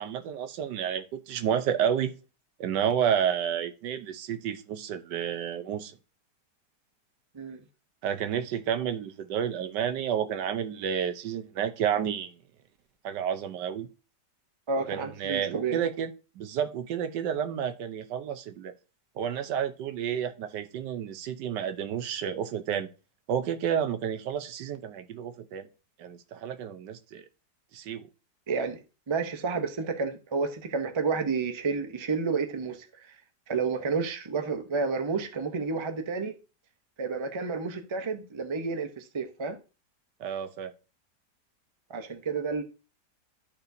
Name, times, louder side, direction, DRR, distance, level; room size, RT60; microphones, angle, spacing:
voice 1, 0.0-2.1 2.6-5.9 8.0-12.3 13.0-13.9 14.9-16.1 16.4-18.7 19.2-22.9 23.3-25.7 26.0-27.3 27.7-28.1 40.2-40.7, right 8 dB, 85° right, 1.4 m, -30 dB
voice 2, 14.7-15.8 28.5-28.8 29.1-33.2 33.5-36.3 37.0-39.6 41.9-42.6, right 4 dB, 35° right, 0.4 m, -30 dB
12.5 x 4.4 x 2.7 m
omnidirectional pair, 1.8 m